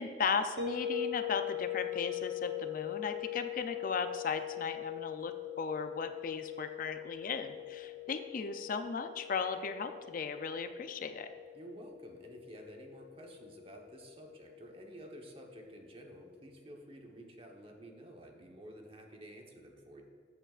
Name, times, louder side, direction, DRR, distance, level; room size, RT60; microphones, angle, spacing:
voice 1, 0.0-11.3, left 5 dB, 50° left, 8 dB, 0.4 m, -36 dB
sound 1, 0.6-15.5, left 12 dB, 75° right, 1.3 m, -42 dB
voice 2, 11.5-20.0, right 1 dB, 35° right, 1 dB, 1.1 m, -51 dB
13.5 x 7.9 x 2.4 m, 2.1 s
head